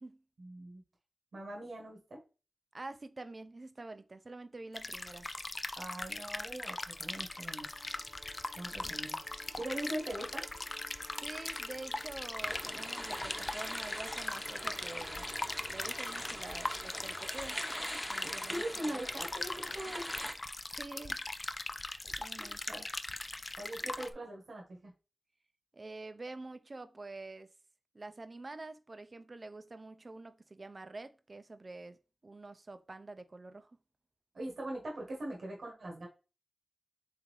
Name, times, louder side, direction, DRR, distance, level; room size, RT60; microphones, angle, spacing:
voice 1, 0.4-0.8 1.3-2.2 5.8-7.7 8.5-9.2 9.6-10.5 18.2-20.1 22.4-22.8 23.6-24.9 34.3-36.1, right 1 dB, 80° right, 1.3 m, -41 dB
voice 2, 2.7-5.3 8.7-8.9 11.2-15.3 15.7-17.6 18.1-19.0 20.7-21.2 22.2-22.9 23.8-23.9 25.7-27.5 27.9-32.0 32.2-33.7, right 2 dB, 45° right, 0.4 m, -47 dB
sound 1, 4.8-24.1, left 2 dB, 40° left, 0.4 m, -40 dB
sound 2, 6.0-17.3, right 2 dB, 60° right, 1.0 m, -55 dB
sound 3, 12.4-20.3, equal, 5° left, 0.8 m, -43 dB
3.8 x 3.5 x 3.1 m
wide cardioid pair, 60°, 0 cm